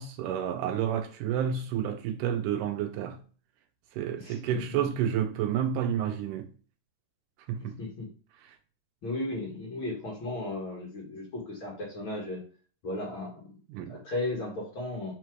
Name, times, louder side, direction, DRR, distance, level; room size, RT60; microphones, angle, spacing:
voice 1, 0.0-3.2 4.0-6.5 7.5-7.8 8.4-8.6 13.7-14.0, right 9 dB, 80° right, 2.0 m, -30 dB
voice 2, 4.2-4.8 7.6-8.1 9.0-12.4 12.8-13.4 13.8-15.1, left 2 dB, 50° left, 1.8 m, -35 dB
4.8 x 4.4 x 4.6 m
omnidirectional pair, 3.9 m